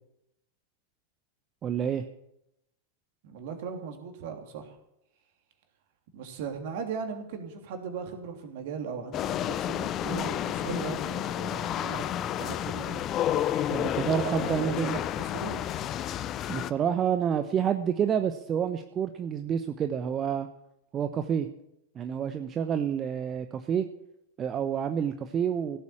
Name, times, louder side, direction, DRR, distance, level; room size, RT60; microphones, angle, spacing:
voice 1, 1.6-2.0 13.7-15.0 16.5-20.5 20.9-21.5 21.9-23.9 24.4-25.8, right 8 dB, 25° right, 8 dB, 0.9 m, -28 dB
voice 2, 3.2-4.7 6.1-13.1 14.0-15.6, right 6 dB, 50° right, 4 dB, 3.2 m, -38 dB
sound 1, 9.1-16.7, left 11 dB, 30° left, 0.7 m, -30 dB
17.0 x 8.4 x 8.7 m, 0.82 s
figure-of-eight pair, 90°, 0 cm